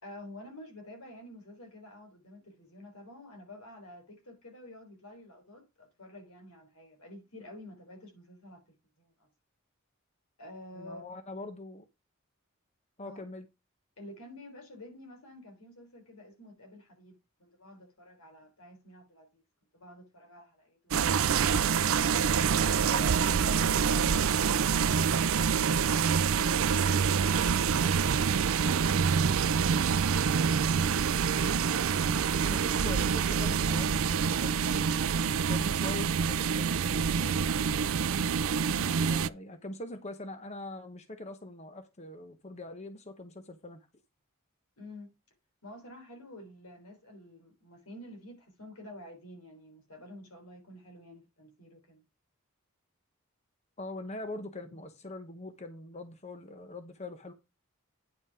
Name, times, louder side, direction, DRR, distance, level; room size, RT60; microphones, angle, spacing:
voice 1, 0.0-8.6 9.0-9.3 10.4-11.0 13.0-13.2 14.0-19.4 19.7-20.9 22.0-24.1 24.5-27.2 27.5-30.2 31.6-32.4 38.7-39.0 44.8-45.1 45.6-52.0, left 1 dB, 85° left, 3.9 m, -49 dB
voice 2, 10.7-11.8 13.0-13.5 22.9-23.2 32.4-34.9 35.5-37.9 39.1-43.9 53.8-57.3, left 2 dB, 30° left, 0.9 m, -43 dB
sound 1, 20.9-39.3, right 6 dB, 70° right, 0.5 m, -26 dB
9.4 x 5.3 x 4.8 m
head